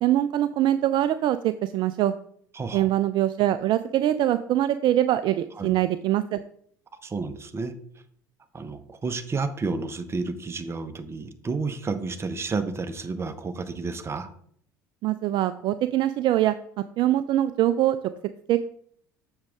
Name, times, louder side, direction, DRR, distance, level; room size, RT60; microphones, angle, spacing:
voice 1, 0.0-2.1 2.7-6.4 15.0-16.5 17.0-18.0 18.5-18.6, right 13 dB, 50° right, 12 dB, 0.4 m, -23 dB
voice 2, 2.5-2.9 5.6-5.7 7.0-7.7 8.5-14.3, right 4 dB, 25° right, 9 dB, 0.9 m, -31 dB
7.3 x 6.2 x 3.6 m, 0.64 s
hypercardioid pair, 65°, 10 cm